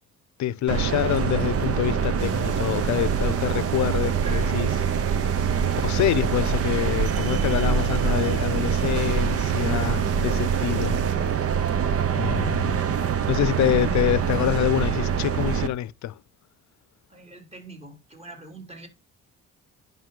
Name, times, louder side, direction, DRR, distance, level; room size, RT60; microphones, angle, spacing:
voice 1, 0.4-4.8 5.8-11.0 12.1-12.8 13.3-16.1, left 13 dB, 70° left, 0.6 m, -26 dB
sound 1, 0.7-15.7, right 7 dB, 50° right, 1.0 m, -24 dB
sound 2, 2.2-11.2, right 9 dB, 80° right, 1.1 m, -43 dB
voice 2, 17.1-18.9, right 2 dB, 20° right, 3.1 m, -44 dB
10.5 x 5.4 x 3.8 m
cardioid pair, 90°, 30 cm